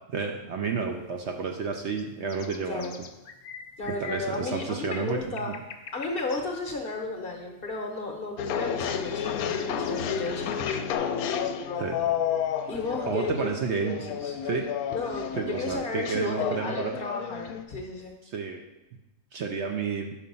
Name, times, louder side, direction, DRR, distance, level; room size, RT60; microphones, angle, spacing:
voice 1, 0.1-2.9 3.9-5.5 11.8-12.0 13.1-14.0 14.4-14.7 15.4-17.0 18.3-18.6 19.3-20.2, right 5 dB, 65° right, 3 dB, 0.8 m, -31 dB
sound 1, 0.9-11.0, left 6 dB, 65° left, 0.5 m, -45 dB
voice 2, 3.8-5.5 5.9-10.7 12.7-13.5 13.8-14.3 14.9-18.1, left 3 dB, 50° left, 2 dB, 0.9 m, -34 dB
sound 2, 8.4-17.6, left 8 dB, 80° left, 1.0 m, -31 dB
5.6 x 5.1 x 5.3 m, 1.0 s
omnidirectional pair, 1.5 m